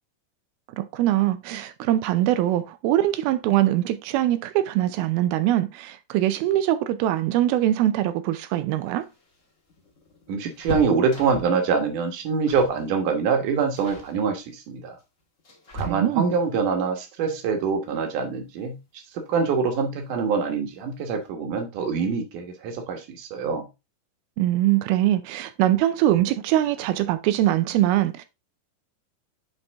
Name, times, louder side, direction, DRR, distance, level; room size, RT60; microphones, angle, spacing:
voice 1, 0.7-9.1 15.7-16.3 24.4-28.2, right 13 dB, 80° right, 2.4 m, -22 dB
sound 1, 8.9-11.6 12.4-12.8 13.1-13.3 13.8-14.1 15.0-16.4 18.2-18.3 18.7-18.8 19.9-20.4 20.7-20.8 21.1-21.3, right 1 dB, 50° left, 0.9 m, -39 dB
voice 2, 10.3-14.9 15.8-18.8 19.1-23.6, right 5 dB, 65° right, 2.6 m, -25 dB
8.0 x 4.3 x 3.4 m
omnidirectional pair, 4.4 m